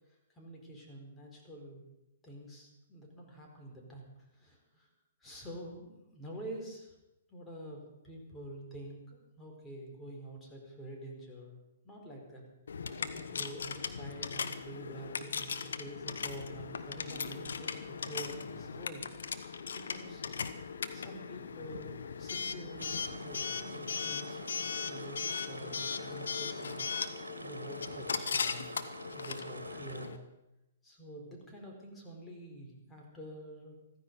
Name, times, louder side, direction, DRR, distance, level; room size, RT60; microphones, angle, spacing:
voice 1, 0.3-1.9 2.2-4.9 5.2-7.0 7.3-11.6 11.8-12.4 13.0-19.0 19.3-20.3 20.9-24.4 24.9-26.9 27.4-30.2 30.8-33.8, right 1 dB, 15° left, -1 dB, 4.5 m, -47 dB
Coin (dropping) / Alarm, 12.7-30.2, left 6 dB, 70° left, 1.1 m, -38 dB
sound 1, 22.8-30.1, right 2 dB, 90° right, 1.4 m, -47 dB
15.0 x 15.0 x 5.4 m, 0.94 s
figure-of-eight pair, 120°, 0 cm